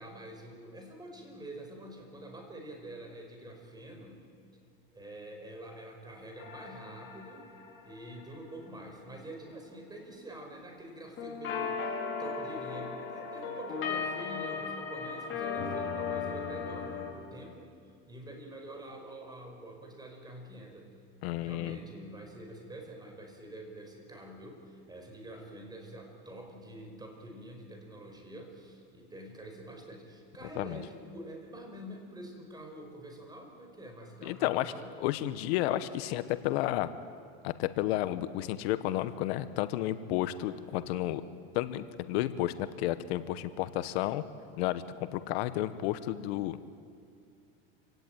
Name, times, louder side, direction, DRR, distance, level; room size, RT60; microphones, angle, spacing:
voice 1, 0.0-4.2 4.9-7.5 7.8-17.7 18.1-20.9 21.4-34.9, right 1 dB, 15° right, 3 dB, 5.2 m, -46 dB
sound 1, 6.4-8.5 11.2-17.1, left 5 dB, 40° left, 5.5 m, -36 dB
voice 2, 21.2-21.8 30.5-30.8 34.2-34.7 35.0-36.9 37.4-41.2 41.5-44.2 44.6-44.8 45.1-46.6, left 14 dB, 80° left, 12 dB, 1.1 m, -31 dB
27.0 x 17.5 x 9.2 m, 2.3 s
supercardioid pair, 130°, 31 cm